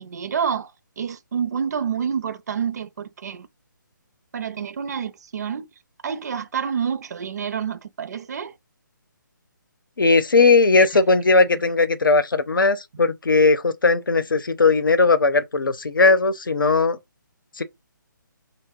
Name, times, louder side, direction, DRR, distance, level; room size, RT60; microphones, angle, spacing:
voice 1, 0.0-3.5 4.3-5.7 6.0-8.5 10.8-10.9 11.4-11.5, right 7 dB, 55° right, 0.5 m, -28 dB
voice 2, 10.0-17.0 17.6-17.7, left 3 dB, 85° left, 0.7 m, -18 dB
2.9 x 2.1 x 3.5 m
hypercardioid pair, 155°, 11 cm